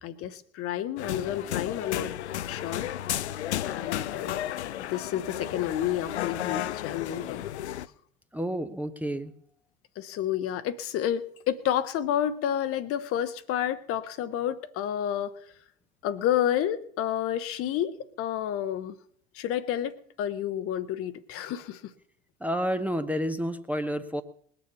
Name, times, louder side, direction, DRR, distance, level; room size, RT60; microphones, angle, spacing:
voice 1, 0.0-2.1 2.4-2.9 3.6-7.5 10.0-15.3 16.0-18.9 19.3-21.9, left 10 dB, 40° left, 13 dB, 0.9 m, -30 dB
sound 1, 1.0-7.9, left 12 dB, 75° left, 0.5 m, -33 dB
voice 2, 8.3-9.3 22.4-24.2, equal, 5° right, 7 dB, 0.7 m, -30 dB
20.0 x 7.0 x 6.9 m, 0.63 s
figure-of-eight pair, 70°, 34 cm